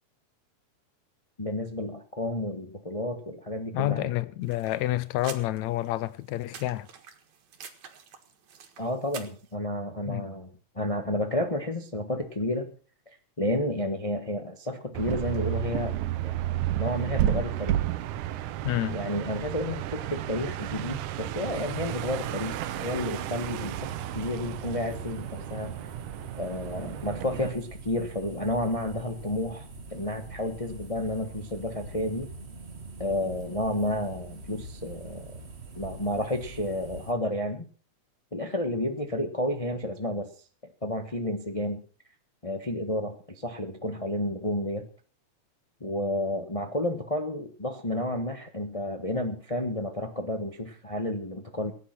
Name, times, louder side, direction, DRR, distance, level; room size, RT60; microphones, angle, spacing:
voice 1, 1.4-4.1 8.8-10.5 10.7-12.7 13.1-16.0 16.2-16.4 16.8-17.8 18.9-25.8 26.3-32.3 33.0-35.3 35.7-37.7 38.3-40.3 40.8-41.8 42.4-44.9 45.8-51.7, left 1 dB, 35° left, 0.5 m, -31 dB
voice 2, 3.7-6.9 10.1-10.3 18.6-19.0, left 16 dB, 75° left, 2.0 m, -29 dB
sound 1, 4.4-9.5, right 7 dB, 65° right, 2.9 m, -47 dB
sound 2, 14.9-27.5, right 13 dB, 85° right, 2.3 m, -32 dB
sound 3, 21.5-37.1, right 2 dB, 35° right, 1.1 m, -44 dB
18.0 x 10.0 x 6.0 m
omnidirectional pair, 3.5 m